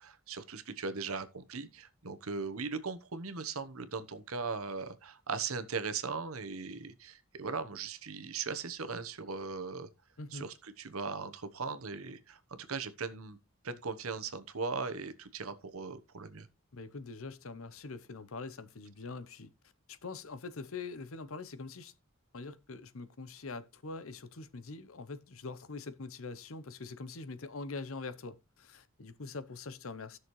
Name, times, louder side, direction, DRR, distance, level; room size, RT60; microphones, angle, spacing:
voice 1, 0.0-9.9 10.3-13.4 13.6-16.5, right 4 dB, 85° right, 1.1 m, -39 dB
voice 2, 10.2-10.5 16.7-19.5 19.9-21.9 22.3-30.2, left 3 dB, 75° left, 0.8 m, -44 dB
15.0 x 6.3 x 3.1 m
head